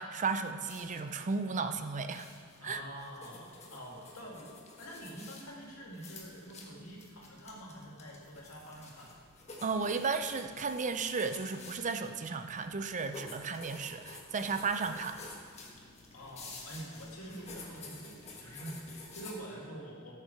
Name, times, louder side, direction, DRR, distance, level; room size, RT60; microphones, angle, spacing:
voice 1, 0.0-2.3 2.6-2.8 9.6-15.2, right 4 dB, 35° right, 8 dB, 0.5 m, -34 dB
sound 1, 0.6-19.3, left 3 dB, 30° left, 1.4 m, -51 dB
voice 2, 2.6-9.1 16.1-20.2, right 1 dB, 75° left, -2 dB, 2.5 m, -46 dB
14.0 x 6.6 x 4.6 m, 2.2 s
head